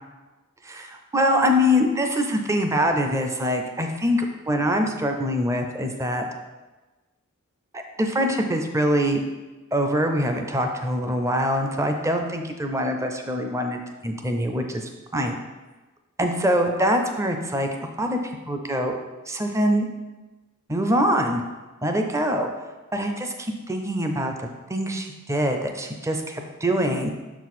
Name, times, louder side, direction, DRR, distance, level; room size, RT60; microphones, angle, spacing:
voice 1, 0.6-6.3 7.7-9.2 9.7-15.4 16.2-17.7 18.0-18.2 18.5-19.0 19.3-19.9 20.7-21.4 21.8-22.5 22.9-27.1, equal, 15° right, 4 dB, 0.5 m, -24 dB
6.5 x 4.6 x 4.2 m, 1.2 s
head